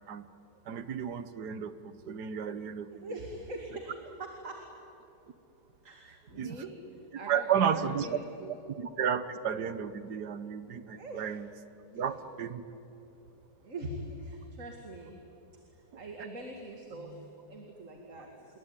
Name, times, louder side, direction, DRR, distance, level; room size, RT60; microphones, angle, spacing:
voice 1, 0.7-3.0 6.4-6.6 7.3-8.2 8.8-11.5 11.9-12.6, right 8 dB, 65° right, 12 dB, 1.6 m, -32 dB
voice 2, 2.9-4.7 5.8-8.6 10.9-11.3 11.9-12.0 13.6-15.2 15.7-18.6, right 1 dB, 45° right, 2 dB, 2.6 m, -43 dB
27.5 x 22.0 x 9.7 m, 3.0 s
omnidirectional pair, 1.9 m